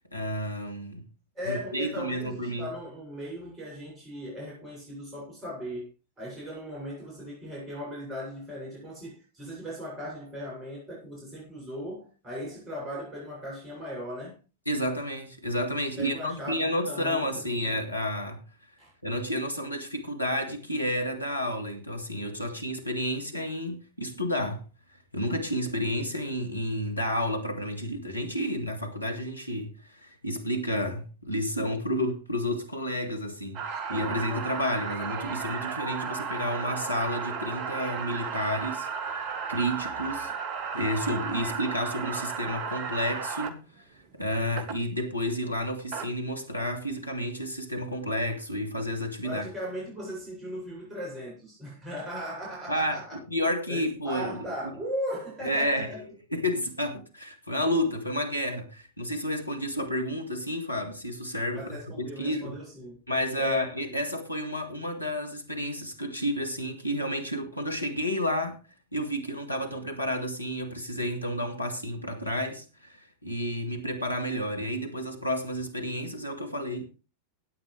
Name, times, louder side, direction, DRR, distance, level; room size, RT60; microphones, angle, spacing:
voice 1, 0.1-1.0 1.5-2.7 14.7-18.4 19.0-24.6 25.1-49.4 52.7-54.7 55.4-62.6 63.1-68.6 68.9-76.9, equal, 85° left, 2.1 m, -31 dB
voice 2, 1.3-5.9 6.2-14.4 16.0-17.8 18.8-18.9 49.2-53.2 53.7-56.0 61.5-63.0 63.4-63.7, equal, 20° right, 7.3 m, -38 dB
sound 1, 33.5-43.5 44.6-44.7 45.7-46.1, right 6 dB, 40° right, 1.7 m, -34 dB
16.5 x 9.4 x 3.4 m
figure-of-eight pair, 90°, 0 cm